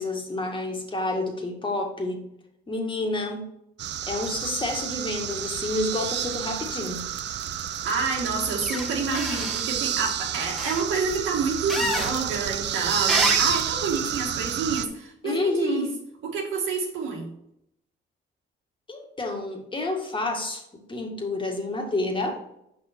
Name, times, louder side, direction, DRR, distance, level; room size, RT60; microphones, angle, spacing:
voice 1, 0.0-2.3 2.7-3.5 4.1-7.1 15.2-16.0 18.9-22.4, left 2 dB, 25° left, 2 dB, 1.8 m, -29 dB
sound 1, 3.8-14.9, right 10 dB, 60° right, 0.5 m, -30 dB
voice 2, 7.8-15.8 16.2-17.3, right 4 dB, 85° right, 0 dB, 2.1 m, -28 dB
sound 2, 8.6-8.9 9.1-9.6 10.6-10.8 11.7-12.1 13.1-13.6, equal, ahead, 1.3 m, -27 dB
6.1 x 5.4 x 4.5 m, 0.78 s
cardioid pair, 90°, 20 cm